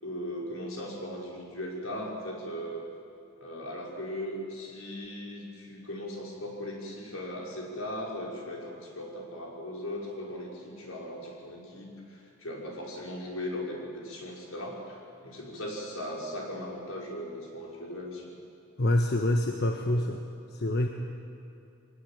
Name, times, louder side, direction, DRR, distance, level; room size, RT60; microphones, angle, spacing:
voice 1, 0.0-2.8 3.4-18.3, left 1 dB, 75° left, -1 dB, 5.5 m, -38 dB
voice 2, 18.8-20.2 20.5-20.9, left 1 dB, 50° left, 3 dB, 1.4 m, -26 dB
22.5 x 19.5 x 8.9 m, 2.8 s
head